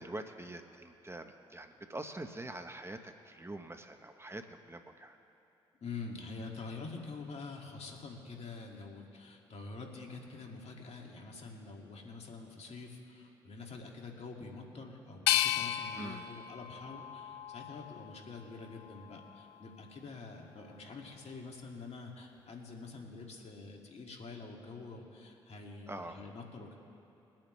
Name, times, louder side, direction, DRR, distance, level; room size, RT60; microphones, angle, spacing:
voice 1, 0.0-5.2 16.0-16.3 25.9-26.2, right 2 dB, 20° right, 6 dB, 1.2 m, -45 dB
voice 2, 5.8-26.7, left 4 dB, 55° left, 1 dB, 2.5 m, -46 dB
sound 1, 15.3-18.2 18.7-19.6, left 13 dB, 90° left, 0.4 m, -34 dB
23.5 x 8.7 x 3.4 m, 2.8 s
hypercardioid pair, 40°, 13 cm